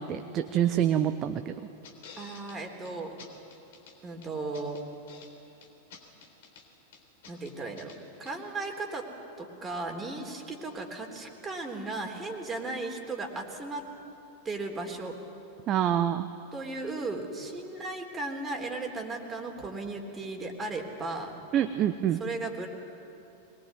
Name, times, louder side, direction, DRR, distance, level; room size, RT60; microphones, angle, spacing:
voice 1, 0.0-1.6 15.7-16.3 21.5-22.2, right 10 dB, 30° right, 9 dB, 0.8 m, -26 dB
sound 1, 1.8-2.6 2.8-2.9 3.2-3.9 4.2-5.3 5.6-6.6 6.9-8.0 8.3-8.4, left 5 dB, 55° left, 3.7 m, -50 dB
voice 2, 2.2-3.1 4.0-4.8 7.3-7.9 8.2-9.1 9.4-13.8 14.4-15.2 16.5-21.3 22.2-22.7, right 3 dB, 15° right, 3 dB, 3.6 m, -36 dB
23.0 x 21.0 x 9.6 m, 2.8 s
figure-of-eight pair, 90°, 0 cm